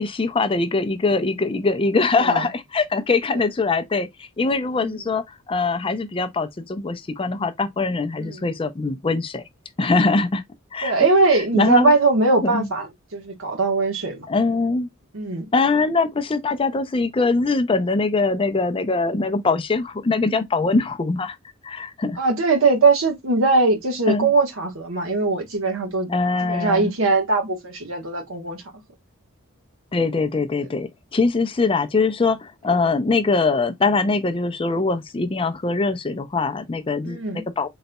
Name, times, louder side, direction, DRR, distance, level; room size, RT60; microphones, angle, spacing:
voice 1, 0.0-9.4 9.8-10.4 10.7-10.9 11.5-11.9 12.4-12.7 14.3-14.9 15.5-21.4 21.6-22.2 24.1-24.3 26.1-26.9 29.9-37.7, left 3 dB, 25° left, 0.4 m, -22 dB
voice 2, 2.2-2.5 4.8-5.1 8.2-8.4 10.8-14.3 15.1-15.4 20.2-20.4 22.2-26.1 26.4-28.6 30.6-30.7 32.7-32.8 37.0-37.4, right 3 dB, 65° right, 1.2 m, -21 dB
4.0 x 3.9 x 2.2 m
head